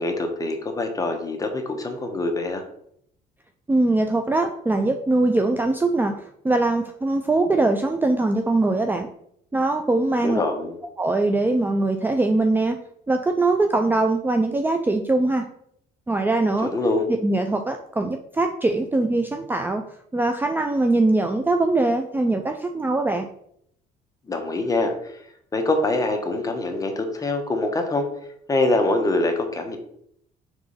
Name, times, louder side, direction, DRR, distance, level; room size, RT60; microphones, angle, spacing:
voice 1, 0.0-2.6 10.2-10.8 16.6-17.0 24.3-24.9 25.5-28.1 28.5-29.8, left 2 dB, 20° left, 4 dB, 1.2 m, -24 dB
voice 2, 3.7-6.1 6.4-9.1 9.5-10.4 11.0-12.8 13.1-15.4 16.1-16.7 17.2-19.8 20.1-23.3, right 2 dB, 10° right, 5 dB, 0.4 m, -22 dB
4.8 x 3.8 x 5.5 m, 0.70 s
cardioid pair, 110°, 17 cm